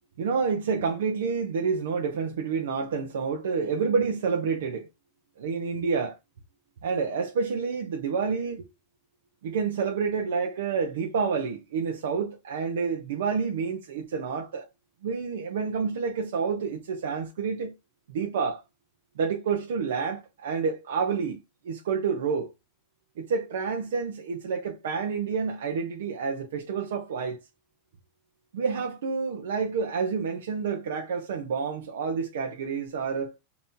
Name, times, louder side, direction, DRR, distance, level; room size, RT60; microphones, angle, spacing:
voice 1, 0.2-4.9 5.4-6.2 6.8-8.7 9.4-14.7 15.0-17.7 18.1-18.6 19.2-21.4 21.6-22.5 23.2-27.4 28.5-33.4, right 5 dB, 90° right, 0.8 m, -29 dB
5.4 x 2.9 x 2.7 m
supercardioid pair, 160°, 0 cm